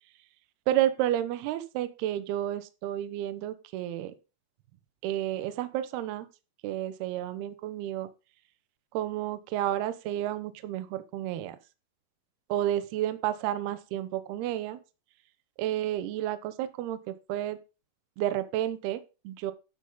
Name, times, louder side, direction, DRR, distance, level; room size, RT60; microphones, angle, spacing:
voice 1, 0.7-4.1 5.0-6.3 6.6-8.1 8.9-11.6 12.5-14.8 15.6-17.6 18.2-19.5, right 12 dB, 75° right, 11 dB, 2.4 m, -31 dB
12.0 x 4.9 x 5.4 m, 0.30 s
omnidirectional pair, 5.6 m